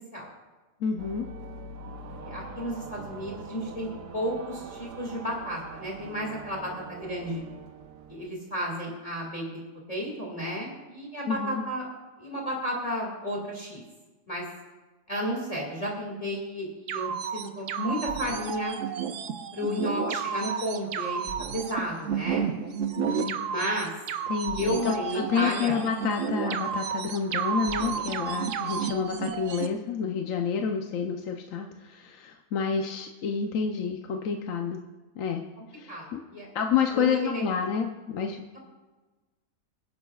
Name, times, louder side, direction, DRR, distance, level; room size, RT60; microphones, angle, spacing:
voice 1, 0.8-1.3 11.3-11.6 19.7-19.8 23.0-23.4 24.3-34.8 35.2-35.4 35.7-36.2 36.5-38.4, left 6 dB, 60° left, 3 dB, 1.0 m, -29 dB
sound 1, 1.0-8.3, right 3 dB, 90° right, 1.5 m, -43 dB
voice 2, 2.2-7.4 8.1-9.4 9.9-11.9 12.2-13.8 14.3-14.5 15.1-18.8 19.5-22.5 23.5-23.9 24.6-25.8 35.6-36.5 36.9-37.4, equal, 20° left, -3 dB, 2.1 m, -32 dB
sound 2, 16.9-29.7, right 7 dB, 60° right, 0.9 m, -31 dB
25.5 x 10.5 x 2.4 m, 1.2 s
omnidirectional pair, 1.7 m